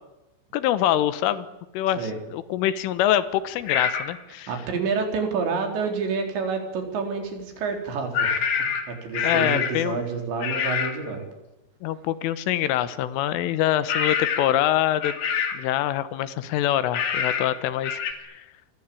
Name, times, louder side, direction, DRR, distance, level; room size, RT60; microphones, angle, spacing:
voice 1, 0.5-1.5 1.7-4.5 9.2-10.0 11.8-15.2 15.5-18.5, left 12 dB, 90° left, 14 dB, 3.8 m, -25 dB
sound 1, 3.7-4.1 8.1-9.9 10.4-11.0 13.9-14.6 15.0-15.7 16.9-17.5 17.8-18.1, left 7 dB, 60° left, 4.4 m, -26 dB
voice 2, 4.5-8.4 8.9-11.3, right 5 dB, 65° right, 4 dB, 6.0 m, -28 dB
27.0 x 24.5 x 8.6 m, 0.94 s
omnidirectional pair, 5.5 m